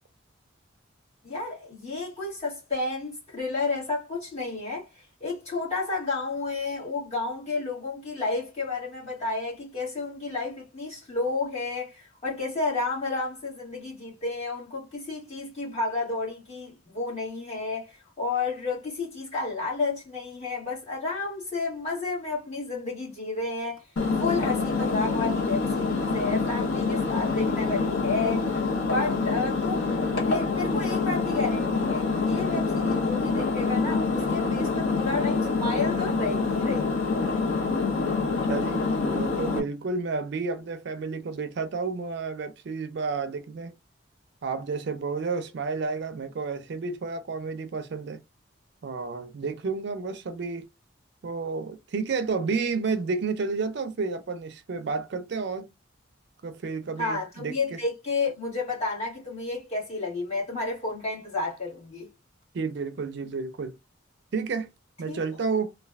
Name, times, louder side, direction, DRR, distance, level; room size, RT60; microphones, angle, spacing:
voice 1, 1.2-4.9 5.2-17.9 18.2-23.8 24.2-28.5 28.9-29.9 30.2-37.1 57.0-62.1 65.1-65.2, left 3 dB, 35° left, 1.7 m, -31 dB
Engine, 24.0-39.6, left 4 dB, 80° left, 0.8 m, -26 dB
voice 2, 38.2-43.7 44.4-48.2 48.8-50.7 51.2-55.7 56.4-57.8 62.5-63.8 64.3-64.7 65.0-65.8, right 4 dB, 55° right, 0.4 m, -31 dB
3.2 x 2.3 x 2.3 m
head